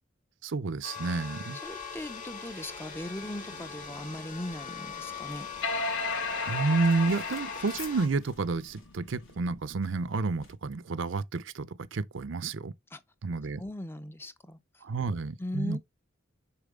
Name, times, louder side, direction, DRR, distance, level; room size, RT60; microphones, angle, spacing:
voice 1, 0.4-1.6 6.5-12.7 13.2-13.6 14.8-15.8, right 3 dB, 70° right, 0.6 m, -30 dB
sound 1, 0.8-8.1, left 6 dB, 40° left, 2.4 m, -42 dB
sound 2, 1.6-10.5, left 4 dB, 90° left, 3.1 m, -54 dB
voice 2, 1.6-5.5 12.9-13.0 13.6-14.6 15.4-15.8, left 1 dB, 10° left, 0.5 m, -38 dB
sound 3, 2.9-9.4, left 4 dB, 60° left, 1.2 m, -36 dB
6.8 x 4.5 x 3.6 m
head